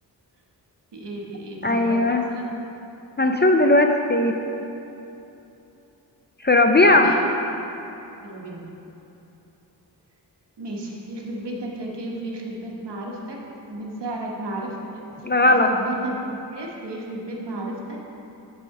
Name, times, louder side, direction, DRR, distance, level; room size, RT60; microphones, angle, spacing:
voice 1, 0.9-2.5 6.8-7.2 8.2-8.7 10.6-13.4 13.7-15.0 15.4-18.0, right 1 dB, 75° right, -2 dB, 1.3 m, -33 dB
voice 2, 1.6-2.3 3.2-4.4 6.4-7.2 15.2-15.7, left 2 dB, 25° left, 3 dB, 0.4 m, -17 dB
8.2 x 4.2 x 6.5 m, 3.0 s
wide cardioid pair, 130°, 42 cm